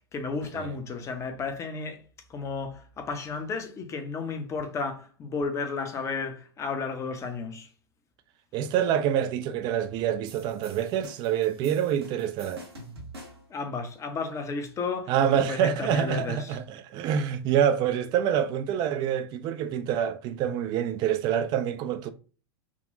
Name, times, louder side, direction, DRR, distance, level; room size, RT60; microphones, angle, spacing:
voice 1, 0.1-2.0 2.3-7.7 13.5-16.6, left 4 dB, 20° left, 0.6 m, -33 dB
voice 2, 8.5-12.7 15.1-22.1, right 9 dB, 35° right, 0.3 m, -26 dB
sound 1, 10.3-13.6, right 1 dB, 75° right, 1.0 m, -47 dB
3.7 x 2.1 x 2.6 m
figure-of-eight pair, 95°, 13 cm